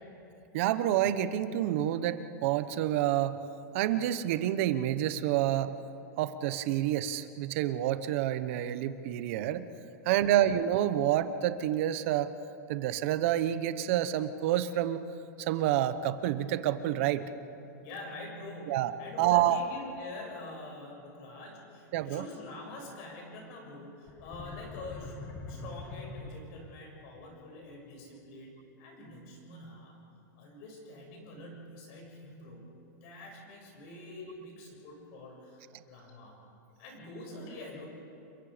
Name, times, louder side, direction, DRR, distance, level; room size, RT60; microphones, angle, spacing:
voice 1, 0.5-3.3 3.7-5.7 6.2-9.7 10.0-12.3 12.7-15.0 15.4-17.3 18.7-18.9 19.2-19.6 21.9-22.2, right 12 dB, 45° right, 12 dB, 1.0 m, -28 dB
voice 2, 10.0-10.3 17.8-30.1 30.4-32.7 33.0-36.3 36.8-37.9, left 2 dB, 45° left, 0 dB, 7.1 m, -45 dB
sound 1, 24.1-26.9, left 3 dB, 20° left, 1.6 m, -43 dB
29.0 x 23.0 x 5.2 m, 3.0 s
supercardioid pair, 165°, 10 cm